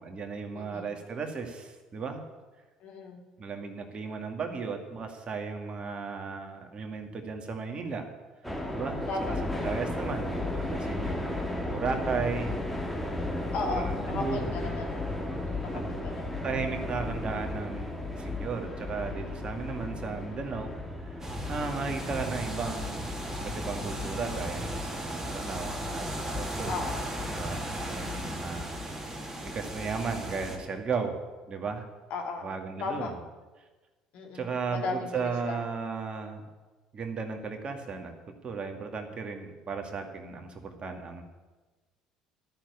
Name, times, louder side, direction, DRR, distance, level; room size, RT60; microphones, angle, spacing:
voice 1, 0.0-2.2 3.4-8.1 8.7-12.8 13.2-14.4 15.7-15.8 16.4-20.7 21.1-21.2 21.5-23.1 23.4-26.1 26.4-26.8 27.3-28.7 29.5-31.2 31.5-31.9 32.4-33.2 34.3-36.4 36.9-41.2, right 5 dB, 40° right, 4 dB, 2.1 m, -35 dB
voice 2, 0.5-0.9 2.8-3.2 9.1-9.4 13.5-15.0 15.5-16.5 21.7-22.1 26.7-27.0 27.8-28.2 32.1-32.5 32.8-33.1 34.1-35.6, left 3 dB, 60° left, 1 dB, 2.6 m, -36 dB
sound 1, 8.4-26.8, left 2 dB, 5° left, 2.3 m, -35 dB
sound 2, 21.2-30.6, equal, 15° right, 2.9 m, -36 dB
13.0 x 6.8 x 9.6 m, 1.3 s
hypercardioid pair, 60°, 3 cm